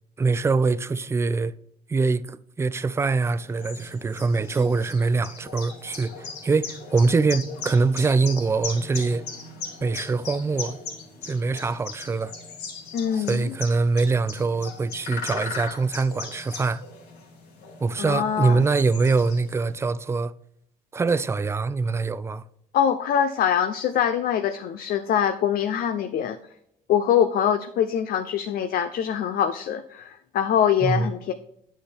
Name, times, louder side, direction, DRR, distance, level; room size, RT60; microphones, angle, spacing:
voice 1, 0.2-1.5 1.9-9.2 9.8-10.8 11.2-12.3 13.1-16.8 17.8-20.3 20.9-22.4 30.8-31.1, right 4 dB, 15° right, 0.4 m, -23 dB
sound 1, 3.2-19.8, left 5 dB, 90° left, 2.2 m, -38 dB
voice 2, 12.9-13.5 18.0-18.6 22.7-26.4 26.9-31.3, left 9 dB, 60° left, 0.6 m, -24 dB
9.7 x 6.4 x 3.5 m
cardioid pair, 110°, 17 cm